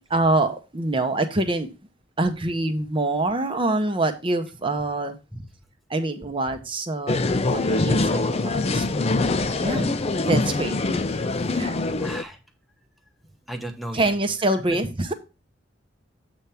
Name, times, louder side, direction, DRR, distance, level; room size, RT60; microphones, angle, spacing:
voice 1, 0.1-1.7 2.2-5.2 5.9-8.9 9.6-9.9 10.3-11.0 11.5-11.7 13.9-15.1, right 2 dB, 30° right, 6 dB, 0.9 m, -25 dB
hotel seeblick servieren tee, 7.1-12.2, left 2 dB, 35° left, 0.5 m, -24 dB
voice 2, 12.0-12.4 13.5-14.1 14.7-14.8, right 1 dB, ahead, 3 dB, 1.0 m, -34 dB
8.1 x 3.5 x 5.6 m, 0.29 s
head